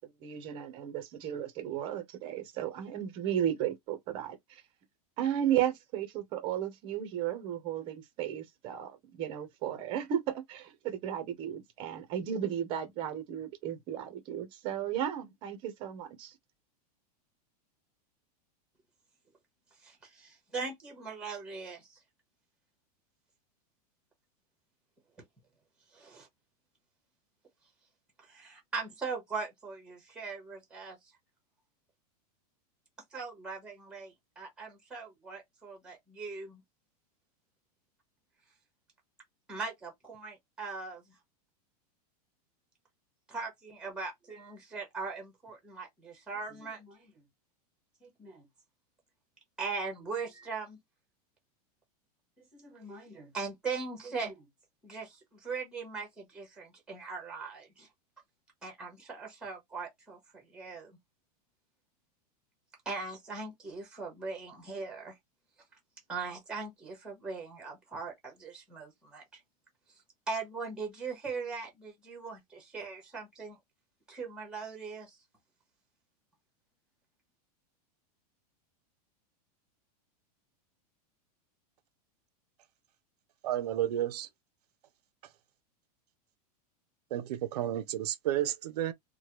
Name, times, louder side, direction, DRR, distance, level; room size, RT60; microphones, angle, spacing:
voice 1, 0.2-4.6 5.2-16.4, right 10 dB, 25° right, 0.7 m, -34 dB
voice 2, 19.8-22.0 25.9-26.3 28.2-31.0 33.1-36.6 39.5-41.2 43.3-47.2 48.0-48.4 49.6-50.8 52.5-54.5 54.8-57.9 58.6-61.0 62.8-65.2 66.1-69.4 70.3-73.6 74.1-75.2, right 4 dB, 5° right, 1.1 m, -40 dB
voice 3, 83.4-84.3 85.2-85.3 87.1-88.9, right 12 dB, 80° right, 0.5 m, -32 dB
3.2 x 2.2 x 2.9 m
supercardioid pair, 175°, 20 cm